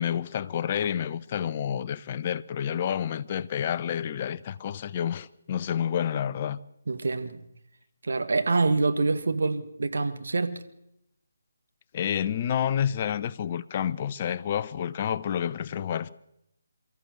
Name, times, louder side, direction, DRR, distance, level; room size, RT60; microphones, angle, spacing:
voice 1, 0.0-6.6 11.9-16.1, left 9 dB, 30° left, 0.7 m, -29 dB
voice 2, 6.9-7.4 8.0-10.6, right 3 dB, 60° right, 1.7 m, -26 dB
24.0 x 13.5 x 8.3 m
figure-of-eight pair, 145°, 0 cm